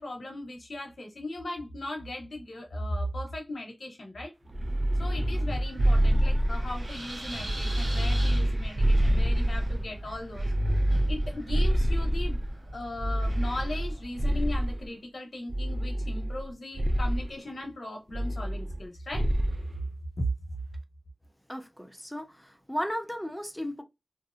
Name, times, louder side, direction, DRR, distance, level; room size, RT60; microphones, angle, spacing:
voice 1, 0.0-4.3 5.0-10.5 11.1-12.4 12.7-19.3, left 1 dB, 85° left, 0.7 m, -38 dB
sound 1, 4.5-6.9 7.4-9.9 10.3-12.5 13.0-14.9 15.5-16.5 16.7-17.2 18.1-18.8 19.1-19.6, right 1 dB, 50° right, 0.3 m, -26 dB
Wind, 4.6-14.7, right 1 dB, 80° right, 1.4 m, -39 dB
voice 2, 21.5-23.8, equal, 5° left, 0.6 m, -35 dB
2.6 x 2.0 x 2.4 m
wide cardioid pair, 60°, 0 cm